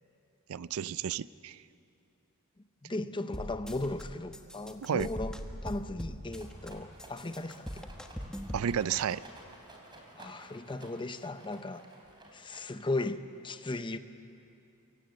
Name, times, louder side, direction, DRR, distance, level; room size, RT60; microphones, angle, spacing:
voice 1, 0.5-1.6 4.8-5.1 8.5-9.2, right 8 dB, 75° right, 18 dB, 0.4 m, -32 dB
voice 2, 2.8-5.4 5.6-7.8 10.2-11.8 12.3-14.0, left 2 dB, 20° left, 11 dB, 0.7 m, -36 dB
sound 1, 3.3-4.0 4.3-6.7 7.0-8.7, equal, 5° left, 1.2 m, -41 dB
Rattle, 6.3-13.0, right 2 dB, 20° right, 3.1 m, -53 dB
23.5 x 17.0 x 7.8 m, 2.7 s
head